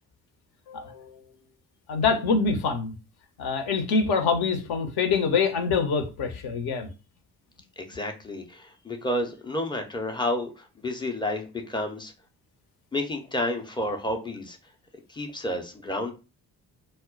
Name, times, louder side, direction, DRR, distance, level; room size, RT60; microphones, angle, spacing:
voice 1, 0.7-1.0 1.9-2.9 3.4-6.9, left 5 dB, 55° left, 5 dB, 0.7 m, -25 dB
voice 2, 7.8-12.1 12.9-14.6 15.1-16.1, left 1 dB, 10° left, 3 dB, 0.5 m, -30 dB
2.1 x 2.0 x 3.7 m, 0.31 s
figure-of-eight pair, 40°, 47 cm